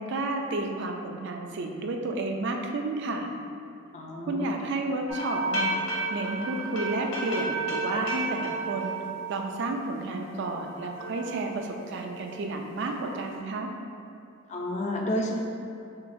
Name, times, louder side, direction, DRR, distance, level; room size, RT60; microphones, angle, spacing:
voice 1, 0.0-3.3 4.3-9.0 9.3-13.7, right 2 dB, 60° right, 3 dB, 0.4 m, -31 dB
voice 2, 3.9-4.5 14.5-15.3, left 1 dB, 35° left, 0 dB, 0.4 m, -30 dB
sound 1, 5.1-9.9 10.2-12.3 12.7-13.4, right 2 dB, 65° left, 0.9 m, -33 dB
5.8 x 2.4 x 2.6 m, 2.6 s
head